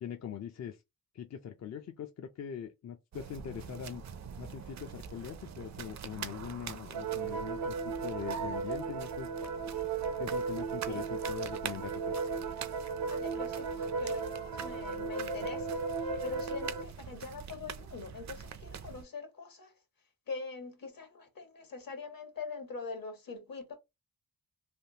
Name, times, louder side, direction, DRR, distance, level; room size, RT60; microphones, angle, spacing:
voice 1, 0.0-0.8 1.1-4.0 4.4-9.3 10.2-12.2, left 8 dB, 45° left, 0.4 m, -42 dB
sound 1, 3.1-19.0, right 7 dB, 50° right, 0.4 m, -45 dB
sound 2, 6.9-16.8, right 5 dB, 80° right, 0.8 m, -36 dB
voice 2, 13.1-15.8 16.2-19.7 20.3-23.8, left 4 dB, 65° left, 1.3 m, -43 dB
3.4 x 2.3 x 2.8 m
wide cardioid pair, 90°, 37 cm